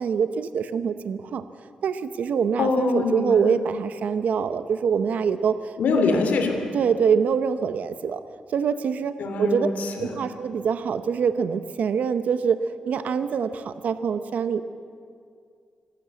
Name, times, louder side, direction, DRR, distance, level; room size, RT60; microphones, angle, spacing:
voice 1, 0.0-1.5 1.8-6.1 6.7-8.2 8.5-9.7 10.0-12.6 12.9-14.6, right 6 dB, 75° right, 11 dB, 0.9 m, -25 dB
voice 2, 2.6-3.5 5.8-6.6 9.2-10.2, left 4 dB, 90° left, 5 dB, 2.8 m, -24 dB
26.0 x 12.0 x 8.3 m, 2.3 s
wide cardioid pair, 135°, 3 cm